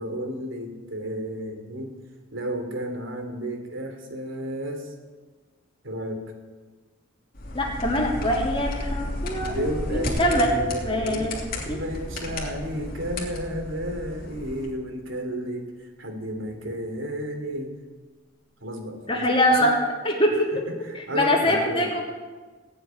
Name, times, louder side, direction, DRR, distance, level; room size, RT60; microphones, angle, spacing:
voice 1, 0.0-1.9 2.3-4.9 5.8-6.2 9.4-11.3 11.7-17.7 18.6-19.3 19.6-19.9 20.3-20.4 20.7-21.9, right 1 dB, 75° right, 5 dB, 3.0 m, -32 dB
sound 1, 7.3-14.7, left 1 dB, 45° left, 2.9 m, -34 dB
voice 2, 7.5-9.6 9.9-10.5 10.8-11.8 19.1-19.7 20.0-20.6 20.9-22.0, left 1 dB, 25° left, -1 dB, 3.2 m, -23 dB
sound 2, 10.1-14.1, right 1 dB, 35° right, 2.6 m, -37 dB
18.0 x 7.9 x 9.8 m, 1.3 s
head